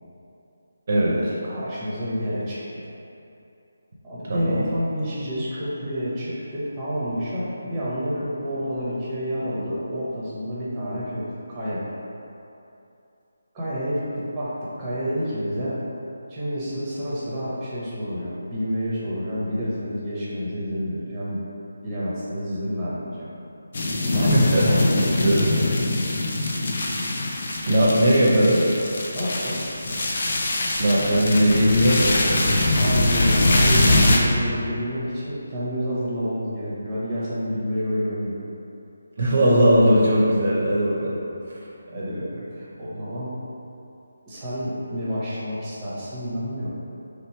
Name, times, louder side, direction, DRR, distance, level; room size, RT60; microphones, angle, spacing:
voice 1, 1.1-2.8 4.0-11.8 13.5-15.8 16.3-21.4 21.8-23.3 24.1-25.4 29.1-29.7 32.8-38.4 41.9-43.3 44.3-46.7, equal, 10° right, -10 dB, 0.8 m, -29 dB
voice 2, 4.3-4.6 24.3-24.7 25.2-25.6 27.7-28.6 30.8-32.4 39.2-41.2 41.5-41.6, equal, 45° right, -5 dB, 0.6 m, -19 dB
sound 1, 23.7-34.2, left 2 dB, 45° left, 0.5 m, -22 dB
3.2 x 2.9 x 4.4 m, 2.8 s
hypercardioid pair, 170°, 0 cm